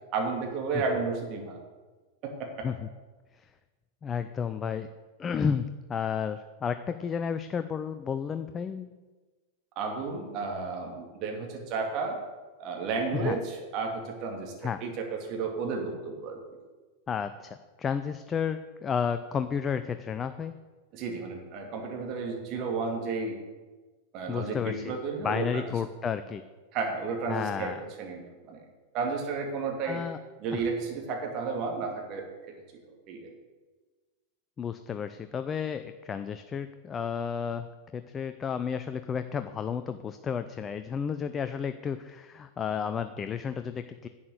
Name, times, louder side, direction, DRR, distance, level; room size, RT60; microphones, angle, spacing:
voice 1, 0.1-1.6 2.2-2.7 9.8-12.2 12.6-16.4 20.9-23.4 24.1-25.7 26.7-28.6 28.9-30.0 30.4-32.5 32.8-33.3, right 4 dB, 40° right, 2 dB, 2.6 m, -32 dB
voice 2, 4.0-4.9 5.2-8.9 13.1-13.4 14.6-14.8 17.1-20.6 24.3-25.0 25.2-26.4 27.3-27.8 29.9-30.2 30.5-30.6 34.6-44.1, left 7 dB, 20° left, 10 dB, 0.5 m, -32 dB
11.0 x 8.8 x 6.6 m, 1.3 s
figure-of-eight pair, 90°, 0 cm